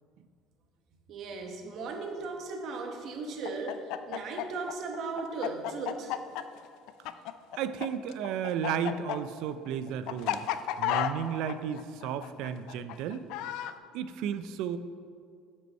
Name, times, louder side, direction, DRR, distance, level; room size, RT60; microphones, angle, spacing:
voice 1, 1.1-6.2, right 4 dB, 50° right, 4 dB, 1.0 m, -37 dB
Chicken rooster, 3.4-7.9 8.1-13.7, left 12 dB, 75° left, 0.3 m, -32 dB
voice 2, 7.6-10.4 10.8-13.2 13.9-14.8, right 8 dB, 70° right, 12 dB, 0.4 m, -33 dB
7.7 x 5.4 x 5.4 m, 2.2 s
cardioid pair, 135°, 0 cm